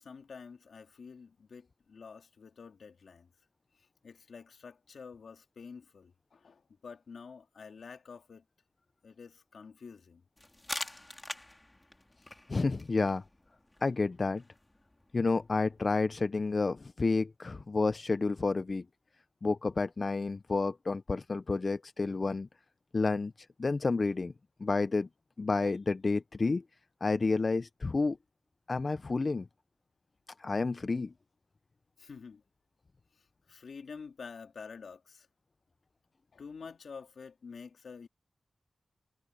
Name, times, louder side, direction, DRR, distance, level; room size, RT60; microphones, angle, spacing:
voice 1, 0.0-3.3 3.8-8.4 9.0-10.2 32.0-32.4 33.2-35.3 36.3-38.1, left 5 dB, 80° left, 2.7 m, -49 dB
sound 1, 10.4-15.9, left 1 dB, 20° left, 3.6 m, -45 dB
voice 2, 12.5-13.2 13.8-14.4 15.1-18.8 19.4-22.5 22.9-23.3 23.6-24.3 24.6-25.1 25.4-26.6 27.0-28.2 28.7-29.5 30.4-31.1, left 3 dB, 50° left, 0.5 m, -30 dB
cardioid pair, 55°, 0 cm